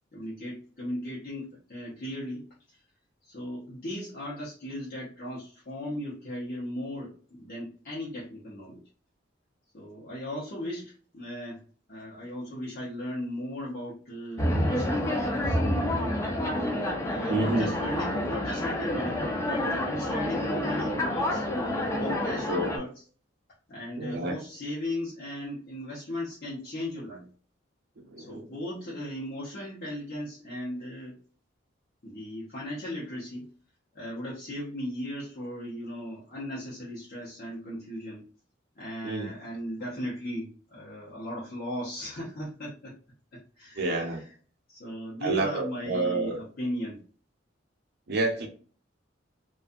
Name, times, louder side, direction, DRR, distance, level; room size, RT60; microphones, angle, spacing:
voice 1, 0.1-2.8 3.2-8.8 9.7-11.6 11.9-15.6 15.8-16.3 17.0-21.5 21.8-23.0 23.7-27.3 28.2-31.2 32.0-33.4 33.9-38.2 38.8-42.9 43.3-44.3 44.7-47.0, left 1 dB, 50° left, -8 dB, 0.8 m, -37 dB
sound 1, 14.4-22.8, left 1 dB, 15° left, 0.5 m, -28 dB
voice 2, 17.3-17.7 22.5-22.7 24.0-24.3 28.1-28.5 39.0-39.3 43.8-44.2 45.2-46.4 48.1-48.5, right 2 dB, 60° right, 2 dB, 0.6 m, -29 dB
2.6 x 2.3 x 2.3 m, 0.41 s
head